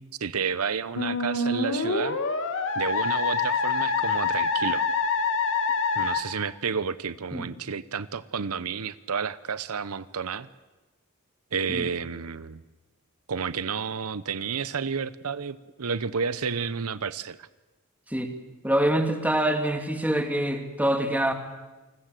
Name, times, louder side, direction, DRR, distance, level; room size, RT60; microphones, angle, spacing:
voice 1, 0.2-2.2 2.7-4.8 6.0-10.5 11.5-12.6 13.3-17.5, right 6 dB, 85° right, 15 dB, 0.8 m, -31 dB
Musical instrument, 1.0-6.2, left 4 dB, 60° left, 2.6 m, -26 dB
voice 2, 18.6-21.3, right 1 dB, 5° right, 5 dB, 2.4 m, -25 dB
29.0 x 20.5 x 7.7 m, 1.1 s
head